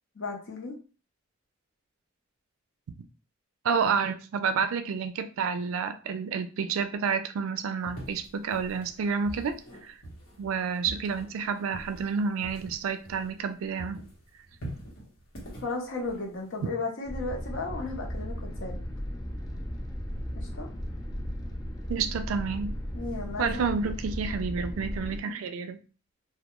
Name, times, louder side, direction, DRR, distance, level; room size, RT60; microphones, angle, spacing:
voice 1, 0.1-0.7 15.6-18.8 20.4-20.7 22.9-23.7 25.3-25.4, left 3 dB, 65° left, 0.7 m, -35 dB
voice 2, 3.6-10.0 10.4-14.0 21.9-22.7 23.4-25.8, right 5 dB, 85° right, 0.3 m, -29 dB
sound 1, 7.8-13.5 13.8-16.7, right 1 dB, 80° left, 1.0 m, -44 dB
sound 2, 17.0-25.2, equal, 20° left, 0.3 m, -36 dB
2.2 x 2.2 x 2.9 m
head